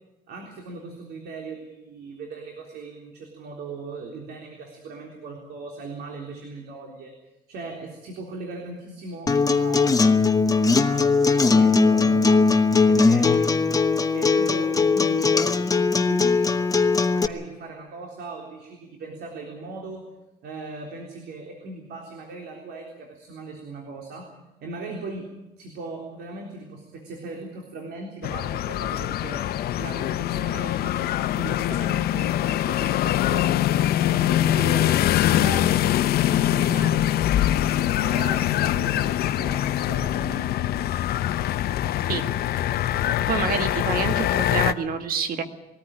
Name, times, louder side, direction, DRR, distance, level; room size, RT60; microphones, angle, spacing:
voice 1, 0.3-7.1 7.5-10.0 10.8-12.6 12.9-13.4 14.1-20.1 20.4-24.3 24.6-25.3 25.6-29.5 29.8-33.6 33.9-35.0 35.3-35.7 36.3-37.1 38.0-40.6, right 3 dB, 75° right, 2 dB, 3.7 m, -38 dB
Acoustic guitar, 9.3-17.3, left 4 dB, 20° left, 1.2 m, -19 dB
sound 1, 28.2-44.7, left 12 dB, 65° left, 0.8 m, -23 dB
voice 2, 43.3-45.4, right 6 dB, 60° right, 8 dB, 1.9 m, -27 dB
21.5 x 14.0 x 9.9 m, 0.97 s
cardioid pair, 110°, 17 cm